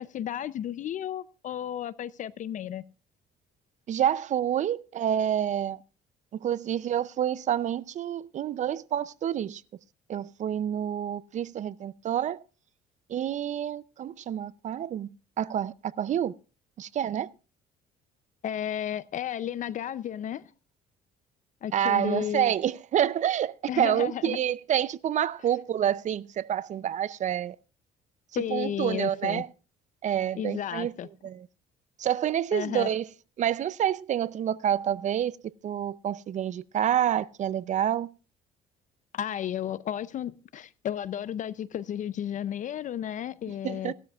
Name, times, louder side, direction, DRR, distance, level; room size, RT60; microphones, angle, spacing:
voice 1, 0.0-2.8 18.4-20.5 21.6-22.5 23.7-24.4 28.4-29.4 30.4-31.1 32.5-32.9 39.1-43.9, left 10 dB, 50° left, 0.5 m, -33 dB
voice 2, 3.9-5.8 6.3-9.6 10.1-12.4 13.1-16.3 16.8-17.3 21.7-27.6 28.5-29.5 30.0-30.9 31.2-31.5 32.0-33.1 33.4-35.3 35.6-38.1 43.6-43.9, right 10 dB, 45° right, 0.5 m, -28 dB
18.0 x 12.5 x 2.3 m
cardioid pair, 110°, 17 cm